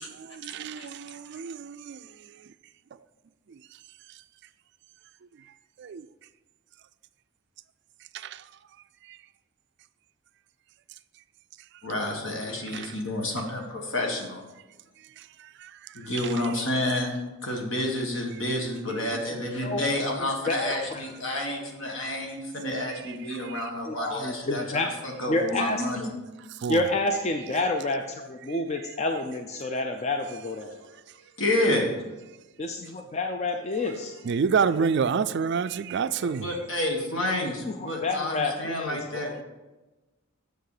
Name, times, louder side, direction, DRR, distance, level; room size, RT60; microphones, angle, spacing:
voice 1, 0.1-0.8 1.3-2.0 5.8-6.1 8.1-8.4 9.1-9.2 12.7-12.9 15.6-15.9 18.9-19.1 22.9-23.6 26.6-26.8 34.3-36.5, right 6 dB, 55° right, 0.3 m, -28 dB
voice 2, 11.8-14.4 15.9-26.1 31.4-31.9 36.4-39.4, left 1 dB, 65° left, 1.7 m, -29 dB
voice 3, 20.2-21.0 23.9-24.9 25.3-25.8 26.7-30.7 32.6-34.1 37.6-39.4, left 2 dB, 30° left, 0.5 m, -29 dB
8.0 x 6.7 x 4.9 m
head